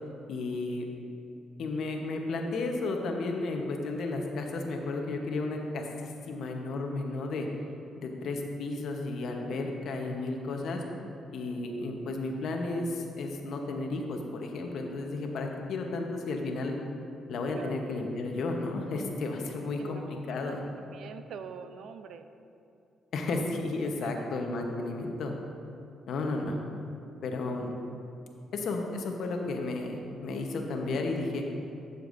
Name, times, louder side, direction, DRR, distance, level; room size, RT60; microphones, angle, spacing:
voice 1, 0.3-0.9 1.6-7.5 8.0-10.8 11.3-16.8 17.3-20.0 20.3-20.6 23.1-25.3 26.1-26.6 27.2-27.7 28.5-31.4, left 3 dB, 70° left, 2 dB, 0.9 m, -33 dB
voice 2, 19.8-20.6 20.9-22.3 24.0-24.1, right 6 dB, 70° right, 9 dB, 0.4 m, -44 dB
11.5 x 6.9 x 2.6 m, 2.6 s
cardioid pair, 90°, 0 cm